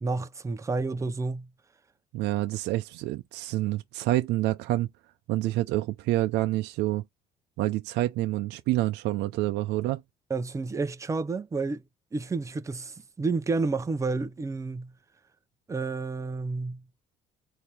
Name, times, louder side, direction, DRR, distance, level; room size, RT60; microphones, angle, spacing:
voice 1, 0.0-1.5 10.3-11.8 12.1-14.9 15.7-16.8, right 3 dB, 20° right, 0.6 m, -30 dB
voice 2, 2.1-4.9 5.3-7.0 7.6-10.0, right 16 dB, 85° right, 0.5 m, -27 dB
4.3 x 2.8 x 3.4 m
cardioid pair, 110°, 17 cm